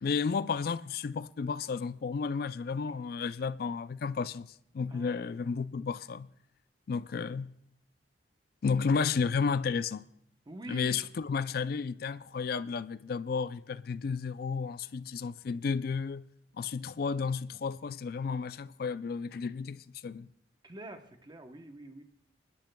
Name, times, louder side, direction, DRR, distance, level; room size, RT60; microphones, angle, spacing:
voice 1, 0.0-6.3 6.9-7.6 8.6-10.1 10.7-16.3 16.6-20.3, left 5 dB, 60° left, 0.4 m, -32 dB
voice 2, 4.9-5.4 10.5-11.0 20.6-22.0, right 1 dB, 25° right, 0.9 m, -46 dB
25.0 x 12.0 x 2.3 m
head